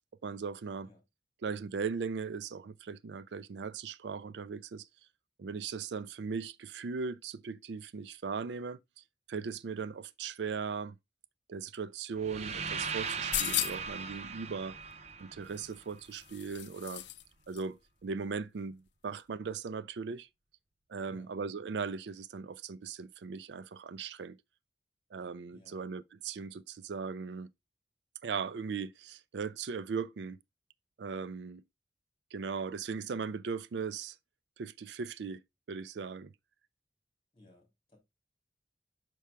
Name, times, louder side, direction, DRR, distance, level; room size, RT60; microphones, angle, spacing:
voice 1, 0.2-0.9 1.4-4.9 5.4-8.8 9.3-11.0 11.5-14.8 15.2-17.0 17.5-20.3 20.9-24.4 25.1-27.5 28.2-30.4 31.0-31.6 32.3-34.2 34.6-35.4 35.7-36.3, right 5 dB, 80° right, 0.4 m, -38 dB
sound 1, 12.2-16.2, right 5 dB, 40° right, 0.6 m, -39 dB
sound 2, 13.1-14.0 15.5-17.2 17.5-17.6, left 13 dB, 85° left, 0.5 m, -36 dB
voice 2, 25.5-25.9 37.3-38.0, left 1 dB, 30° left, 3.3 m, -60 dB
6.2 x 5.6 x 3.3 m
head